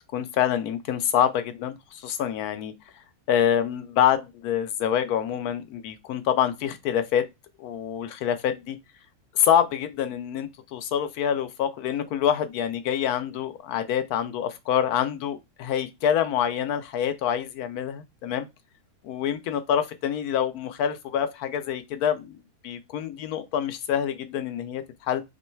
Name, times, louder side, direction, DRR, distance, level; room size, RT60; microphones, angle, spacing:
voice 1, 0.1-2.7 3.3-7.2 7.6-8.8 9.4-18.5 19.0-22.4 22.6-25.2, left 9 dB, 85° left, 1.1 m, -26 dB
3.0 x 2.9 x 4.4 m
omnidirectional pair, 1.6 m